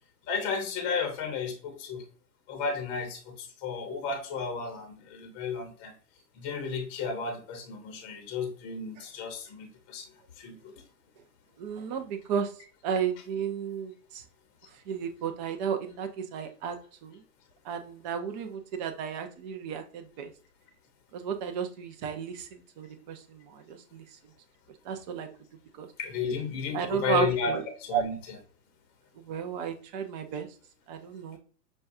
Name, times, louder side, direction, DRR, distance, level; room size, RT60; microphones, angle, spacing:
voice 1, 0.3-2.0 2.5-5.9 6.4-10.0 10.4-10.6 26.0-28.2, left 5 dB, 25° left, 4 dB, 0.8 m, -33 dB
voice 2, 11.6-12.5 12.8-14.2 14.9-17.2 17.6-20.3 21.1-24.0 24.8-25.3 25.8-25.9 26.7-27.6 27.9-28.0 29.2-30.5 30.9-31.4, right 7 dB, 25° right, 6 dB, 0.5 m, -33 dB
6.2 x 2.3 x 2.6 m, 0.41 s
hypercardioid pair, 120°, 49 cm